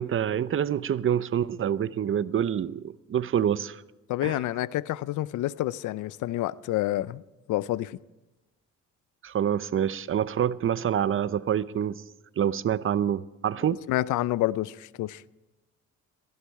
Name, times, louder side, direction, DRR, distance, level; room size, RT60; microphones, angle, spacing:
voice 1, 0.0-3.8 4.2-4.4 9.2-12.0 12.4-13.8, right 9 dB, 45° right, 0.6 m, -26 dB
voice 2, 4.1-7.2 7.5-7.9 13.9-15.2, left 15 dB, 80° left, 0.5 m, -28 dB
17.5 x 15.0 x 4.8 m
cardioid pair, 90°, 30 cm